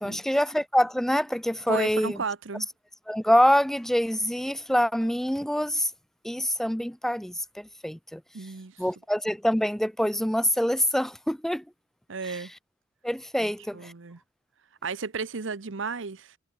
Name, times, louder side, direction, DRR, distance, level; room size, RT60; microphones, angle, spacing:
voice 1, 0.0-2.2 3.1-5.9 6.2-8.2 8.8-11.6 12.3-12.4 13.0-13.9, equal, ahead, 0.6 m, -25 dB
voice 2, 1.7-2.7 8.3-8.8 12.1-12.5 13.4-14.2 14.8-16.4, right 5 dB, 80° right, 0.9 m, -34 dB
head